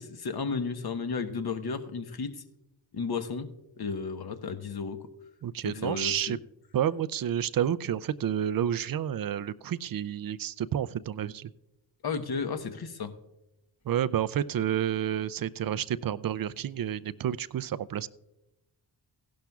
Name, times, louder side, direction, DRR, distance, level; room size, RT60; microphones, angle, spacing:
voice 1, 0.0-2.4 2.9-3.5 3.8-5.0 5.6-6.4 12.0-13.1, left 5 dB, 50° left, 9 dB, 1.1 m, -33 dB
voice 2, 5.4-6.4 6.7-11.5 13.9-18.1, right 10 dB, 45° right, 16 dB, 0.5 m, -30 dB
16.0 x 11.5 x 2.4 m, 0.93 s
cardioid pair, 50°, 49 cm